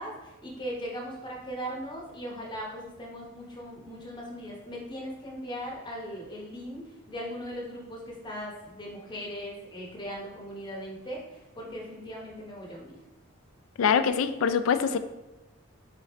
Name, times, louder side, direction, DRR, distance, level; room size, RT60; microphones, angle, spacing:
voice 1, 0.0-13.0, equal, 20° left, -2 dB, 0.9 m, -39 dB
voice 2, 13.8-15.0, left 7 dB, 65° left, 10 dB, 0.3 m, -24 dB
4.0 x 3.2 x 3.6 m, 1.0 s
head